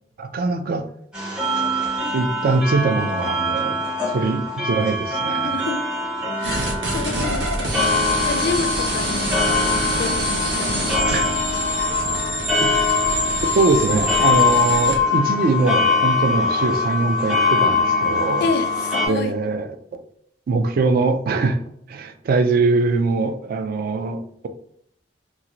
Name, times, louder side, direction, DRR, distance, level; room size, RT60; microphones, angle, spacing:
voice 1, 0.2-0.8 2.1-3.8 4.1-5.5 7.2-7.3 11.1-11.3 12.6-12.7 13.6-18.5 19.1-20.0 20.5-21.6 21.9-24.5, right 3 dB, 55° right, 8 dB, 0.3 m, -22 dB
sound 1, 1.1-19.1, left 3 dB, 5° right, 0.7 m, -22 dB
voice 2, 5.4-5.8 6.4-6.7 6.9-7.9 8.3-9.4 9.7-11.0 18.4-19.3, left 4 dB, 60° left, 9 dB, 0.3 m, -28 dB
sound 2, 6.4-15.0, right 1 dB, 80° right, 0.8 m, -26 dB
2.6 x 2.4 x 2.9 m, 0.71 s
head